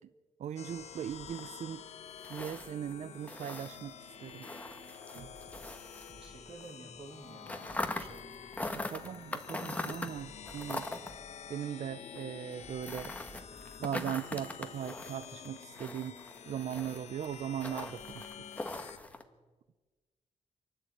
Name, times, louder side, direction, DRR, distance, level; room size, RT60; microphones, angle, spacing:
voice 1, 0.4-1.8 2.3-4.5 5.1-5.3 8.7-10.9 11.5-13.1 13.8-16.1 16.5-18.3, right 9 dB, 65° right, 13 dB, 0.6 m, -39 dB
sound 1, 0.6-19.0, left 8 dB, 60° left, 1.1 m, -49 dB
sound 2, 0.7-6.7 6.9-19.2, left 2 dB, 10° left, 1.4 m, -43 dB
sound 3, 5.2-6.9 7.6-11.8 12.6-15.1, right 1 dB, 15° right, 3.7 m, -59 dB
voice 2, 6.1-9.9, right 3 dB, 45° right, 3 dB, 2.3 m, -53 dB
28.0 x 11.5 x 8.6 m, 1.3 s
wide cardioid pair, 175°, 13 cm